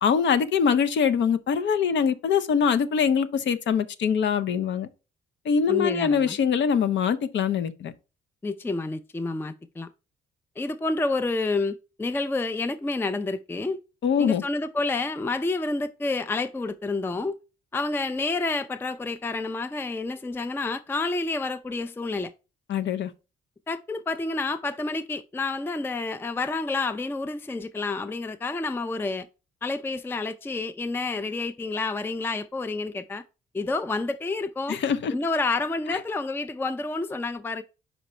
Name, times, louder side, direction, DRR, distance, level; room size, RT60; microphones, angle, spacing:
voice 1, 0.0-4.9 5.4-7.9 14.0-14.4 22.7-23.1 34.7-35.1, left 7 dB, 65° left, 0.8 m, -23 dB
voice 2, 5.7-6.4 8.4-9.9 10.6-13.8 14.2-17.4 17.7-22.3 23.7-29.3 29.6-33.2 33.5-34.8 35.1-37.6, left 3 dB, 10° left, 0.4 m, -29 dB
5.1 x 4.9 x 4.3 m
cardioid pair, 90°, 20 cm